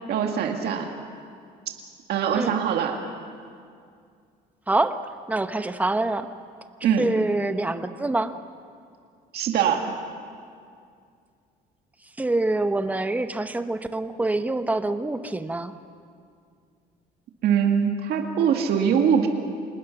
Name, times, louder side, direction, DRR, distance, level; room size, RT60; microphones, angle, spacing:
voice 1, 0.1-0.9 2.1-3.0 6.8-7.1 9.3-9.9 17.4-19.3, right 7 dB, 70° right, 3 dB, 2.0 m, -22 dB
voice 2, 4.7-5.0 5.3-6.3 7.0-8.3 12.2-15.7, right 2 dB, 10° right, 9 dB, 0.9 m, -25 dB
27.0 x 20.0 x 6.0 m, 2.3 s
cardioid pair, 110°, 17 cm